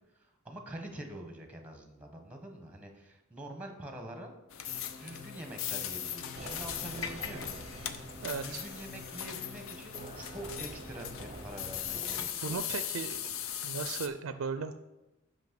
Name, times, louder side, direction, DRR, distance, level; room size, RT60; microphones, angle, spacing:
voice 1, 0.1-4.3 4.9-7.6 8.4-12.6, right 1 dB, 5° right, 4 dB, 0.9 m, -45 dB
sound 1, 4.5-14.1, left 9 dB, 80° left, 0.5 m, -39 dB
sound 2, 4.7-12.2, left 4 dB, 50° left, 1.1 m, -51 dB
sound 3, 6.3-12.2, right 3 dB, 30° right, 0.5 m, -47 dB
voice 2, 8.2-8.7 12.4-13.3 13.6-14.8, right 5 dB, 80° right, 10 dB, 0.4 m, -36 dB
5.9 x 5.3 x 5.8 m, 0.99 s
head